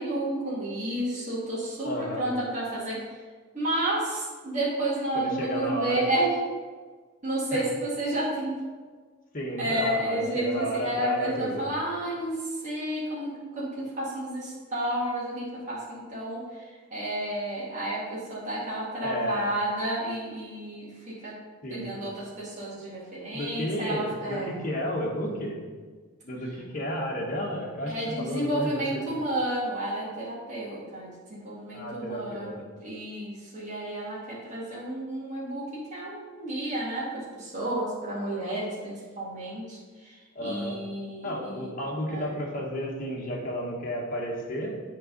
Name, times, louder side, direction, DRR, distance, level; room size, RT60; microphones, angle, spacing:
voice 1, 0.0-3.0 3.5-6.4 7.2-8.6 9.6-20.9 21.2-21.4 21.7-24.5 25.3-25.4 27.9-40.2 40.4-41.7 42.1-42.3, right 1 dB, 35° right, -7 dB, 2.0 m, -31 dB
voice 2, 1.8-2.3 5.1-6.1 7.5-7.6 9.3-11.6 19.0-19.5 21.6-22.2 23.3-25.6 26.2-28.8 29.1-29.2 31.7-32.5 40.3-40.8 41.2-44.8, equal, 45° left, -2 dB, 1.3 m, -32 dB
7.9 x 3.9 x 5.2 m, 1.5 s
head